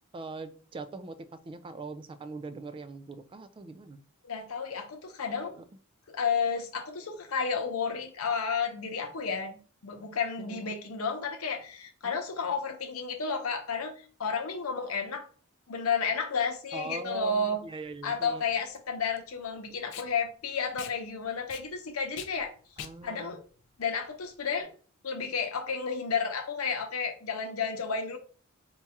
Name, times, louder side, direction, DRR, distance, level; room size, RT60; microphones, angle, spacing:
voice 1, 0.1-4.0 5.6-5.7 10.4-10.7 12.0-12.2 16.7-18.4 22.8-23.4, right 3 dB, 25° right, 11 dB, 0.3 m, -41 dB
voice 2, 4.2-5.5 6.1-15.3 15.7-17.6 18.0-22.5 23.0-23.4 23.8-24.7 25.0-28.2, left 5 dB, 90° left, 4 dB, 0.8 m, -32 dB
Packing tape duct tape, 17.1-24.6, left 9 dB, 60° left, 0.4 m, -47 dB
4.5 x 2.3 x 2.8 m, 0.41 s
head